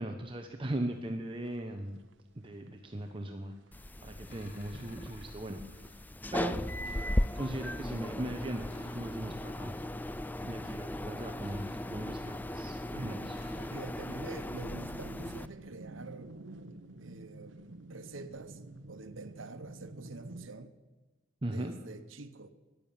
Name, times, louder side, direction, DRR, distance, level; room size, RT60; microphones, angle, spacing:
voice 1, 0.0-2.0 2.4-3.5 4.0-6.1 6.3-6.6 7.4-9.8 10.4-13.4 13.6-13.7 21.4-21.7, right 1 dB, 25° right, 0.9 m, -39 dB
sound 1, 0.9-20.5, right 2 dB, 65° right, 0.9 m, -52 dB
sound 2, 3.7-15.5, left 1 dB, 10° left, 0.4 m, -37 dB
sound 3, 4.3-5.3 6.8-7.6 8.7-9.5 11.4-12.4 13.3-14.3, left 2 dB, 65° left, 4.1 m, -59 dB
voice 2, 12.9-16.4 17.0-18.6 18.9-20.7 21.5-22.5, right 3 dB, 90° right, 1.1 m, -46 dB
13.5 x 11.0 x 8.9 m
head